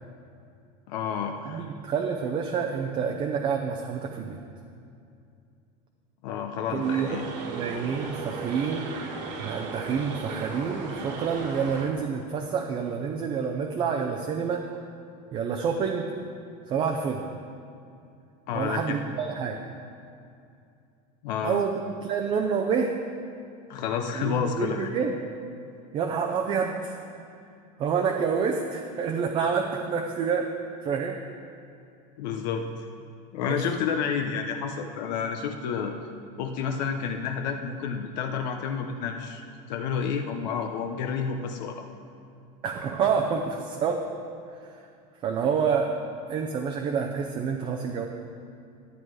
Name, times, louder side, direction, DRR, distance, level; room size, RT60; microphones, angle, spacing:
voice 1, 0.9-1.7 6.2-7.2 18.5-19.0 21.2-21.7 23.7-24.9 32.2-32.6 33.3-35.9 36.4-39.4 39.7-41.8, left 6 dB, 90° left, 5 dB, 0.8 m, -30 dB
voice 2, 1.4-4.4 6.7-8.9 9.4-14.7 15.3-16.1 16.7-17.2 18.5-19.6 21.4-22.9 24.1-25.2 25.9-27.0 27.8-30.5 30.8-31.2 33.4-33.6 42.6-44.0 45.2-45.9 46.3-48.0, right 6 dB, 25° right, 2 dB, 0.5 m, -28 dB
sound 1, 6.8-11.9, right 4 dB, 90° right, 2.0 m, -36 dB
11.0 x 9.1 x 4.7 m, 2.5 s
cardioid pair, 175°, 21 cm